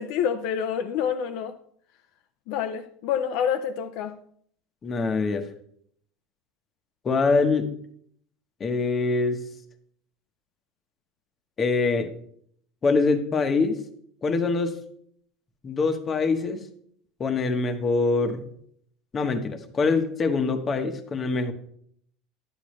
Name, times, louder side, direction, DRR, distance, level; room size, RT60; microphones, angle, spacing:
voice 1, 0.0-1.5 2.5-4.2, left 8 dB, 65° left, 0.6 m, -27 dB
voice 2, 4.8-5.4 7.0-7.7 8.6-9.4 11.6-12.1 12.8-13.8 14.2-14.8 15.6-16.6 17.2-18.4 19.1-21.5, left 4 dB, 25° left, 1.1 m, -24 dB
11.0 x 8.5 x 3.2 m
supercardioid pair, 135°, 0 cm